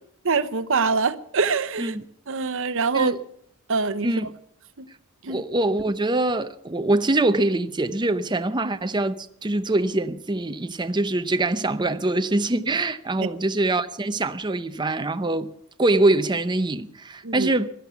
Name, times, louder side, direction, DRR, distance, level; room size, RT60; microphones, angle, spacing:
voice 1, 0.2-2.0 2.3-3.1 3.7-4.1 4.8-4.9 5.2-5.4 13.2-13.3 17.2-17.5, right 4 dB, 60° right, 0.9 m, -24 dB
voice 2, 5.3-15.5 15.8-17.7, right 2 dB, 20° right, 0.7 m, -24 dB
16.0 x 12.5 x 6.9 m
head